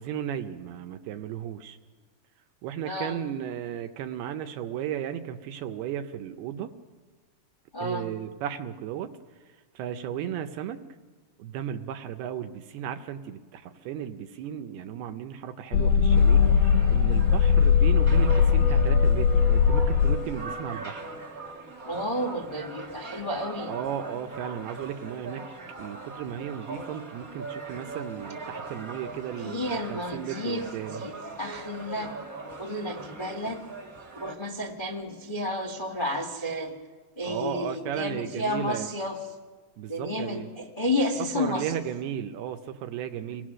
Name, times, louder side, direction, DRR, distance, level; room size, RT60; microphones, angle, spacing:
voice 1, 0.0-1.8 2.6-6.7 7.8-9.1 9.8-10.8 11.4-21.1 23.7-25.4 25.8-31.0 37.2-38.9 39.8-40.5 41.2-43.5, right 9 dB, 75° right, 8 dB, 2.6 m, -35 dB
voice 2, 2.8-3.2 7.7-8.1 21.8-23.7 29.4-30.6 31.0-31.1 31.4-32.1 32.6-33.6 34.2-36.7 37.2-39.2 39.9-41.6, left 1 dB, 30° left, 1 dB, 0.8 m, -31 dB
sound 1, 15.7-20.7 21.1-21.2, left 6 dB, 75° left, 2.3 m, -20 dB
sound 2, 16.1-34.3, right 3 dB, 60° right, 0.9 m, -41 dB
27.0 x 19.5 x 6.3 m, 1.4 s
omnidirectional pair, 5.0 m